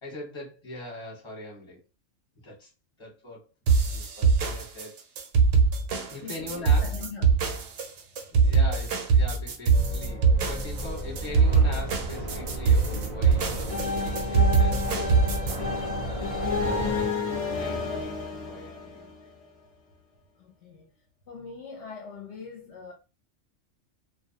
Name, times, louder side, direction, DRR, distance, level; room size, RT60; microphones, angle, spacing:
voice 1, 0.0-1.8 2.4-2.7 3.0-3.5 3.8-5.0 6.0-7.0 8.3-19.1, left 1 dB, 25° left, 0.9 m, -42 dB
sound 1, 3.7-15.6, right 5 dB, 80° right, 0.9 m, -23 dB
voice 2, 6.2-7.6 20.4-20.9 21.3-22.9, left 5 dB, 70° left, 0.8 m, -42 dB
sound 2, 9.7-17.1, right 1 dB, 40° right, 0.4 m, -34 dB
sound 3, 13.7-19.4, left 4 dB, 40° left, 0.5 m, -31 dB
2.2 x 2.1 x 2.7 m
omnidirectional pair, 1.3 m